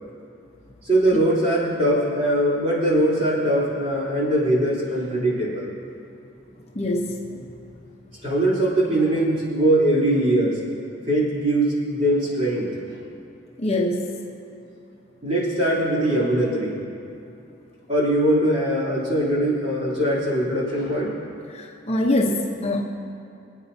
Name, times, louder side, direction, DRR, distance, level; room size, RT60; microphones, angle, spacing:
voice 1, 0.9-5.7 8.2-10.6 11.1-13.0 15.2-16.8 17.9-21.1, right 1 dB, 35° right, -7 dB, 3.2 m, -21 dB
voice 2, 6.7-7.4 13.6-14.1 21.5-22.8, left 1 dB, 35° left, 0 dB, 0.8 m, -24 dB
24.5 x 8.9 x 2.7 m, 2.5 s
head